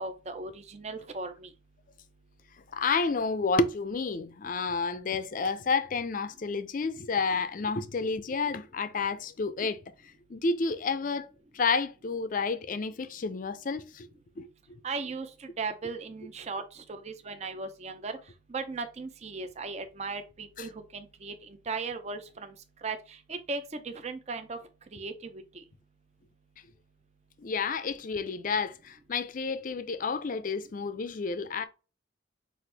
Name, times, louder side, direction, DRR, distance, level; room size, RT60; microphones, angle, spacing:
voice 1, 0.0-1.5 14.8-18.2 18.5-22.5 22.8-24.6 24.9-25.6, right 4 dB, 35° right, 0.5 m, -37 dB
voice 2, 2.7-9.8 10.3-11.3 11.5-14.1 14.4-14.5 20.6-20.7 27.4-31.7, left 4 dB, 45° left, 0.4 m, -30 dB
5.8 x 2.5 x 3.3 m
head